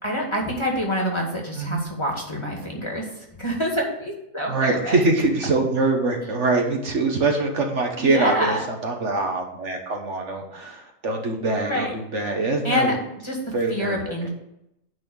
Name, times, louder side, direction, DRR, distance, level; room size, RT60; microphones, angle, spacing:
voice 1, 0.0-3.1 3.4-5.0 8.0-8.6 11.6-11.9 12.6-12.9 13.2-13.4 13.7-14.3, equal, 20° left, -1 dB, 2.0 m, -26 dB
voice 2, 4.5-13.0 13.5-14.1, right 3 dB, 60° right, 2 dB, 1.5 m, -24 dB
9.5 x 4.2 x 7.1 m, 0.81 s
omnidirectional pair, 1.4 m